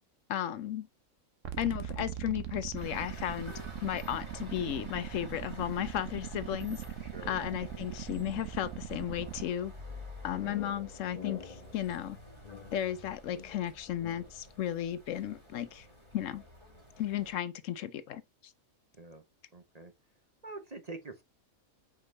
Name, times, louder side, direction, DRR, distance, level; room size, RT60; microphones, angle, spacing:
voice 1, 0.3-0.9 1.6-3.5 3.8-6.8 7.2-9.7 10.2-12.2 12.7-15.9 16.1-16.4 17.0-18.5, left 11 dB, 70° left, 0.9 m, -34 dB
sound 1, 1.4-9.5, right 10 dB, 65° right, 1.1 m, -41 dB
sound 2, 2.7-17.3, left 1 dB, 20° right, 3.0 m, -50 dB
voice 2, 7.0-7.4 10.4-10.6 19.0-19.2 19.5-19.9 20.4-21.2, right 3 dB, 35° right, 0.8 m, -45 dB
sound 3, 9.9-14.5, left 6 dB, 35° left, 1.0 m, -48 dB
5.1 x 4.8 x 3.9 m
omnidirectional pair, 1.4 m